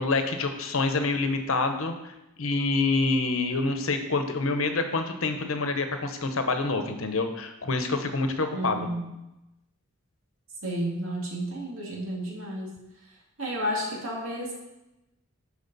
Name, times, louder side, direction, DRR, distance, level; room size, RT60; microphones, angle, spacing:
voice 1, 0.0-2.1 2.4-8.9, left 3 dB, 70° left, 7 dB, 0.9 m, -27 dB
voice 2, 8.5-9.1 10.6-12.7 13.4-14.5, equal, 75° right, -3 dB, 2.3 m, -31 dB
12.0 x 5.0 x 4.1 m, 0.95 s
head